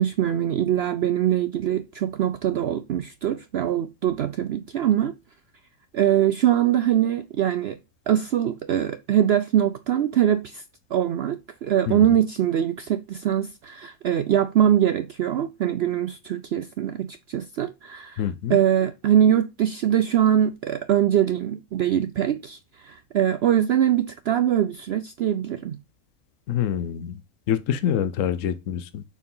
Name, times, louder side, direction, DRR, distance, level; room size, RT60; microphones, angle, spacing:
voice 1, 0.0-5.2 5.9-7.8 8.1-10.6 10.9-18.2 18.5-25.8, right 10 dB, 60° right, 0.7 m, -23 dB
voice 2, 18.2-18.6 26.5-27.2 27.5-29.0, left 9 dB, 70° left, 1.0 m, -26 dB
7.1 x 4.7 x 5.5 m
omnidirectional pair, 1.4 m